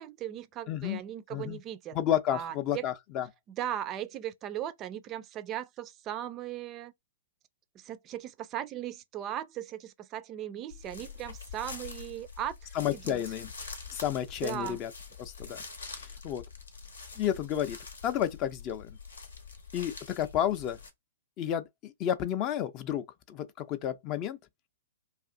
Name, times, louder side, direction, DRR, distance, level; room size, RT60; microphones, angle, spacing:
voice 1, 0.0-2.0 2.3-2.9 3.6-6.9 7.8-12.6 12.9-13.2 14.4-14.8, right 11 dB, 30° right, 0.3 m, -38 dB
voice 2, 0.7-1.0 1.3-1.6 1.9-3.3 12.7-13.5 13.9-14.9 15.2-15.6 15.9-16.4 17.2-17.8 18.0-19.0 19.7-20.8 21.4-24.4, left 10 dB, 35° left, 0.4 m, -31 dB
sound 1, 10.7-20.9, left 5 dB, 75° left, 0.8 m, -45 dB
2.5 x 2.4 x 3.6 m
figure-of-eight pair, 115°, 0 cm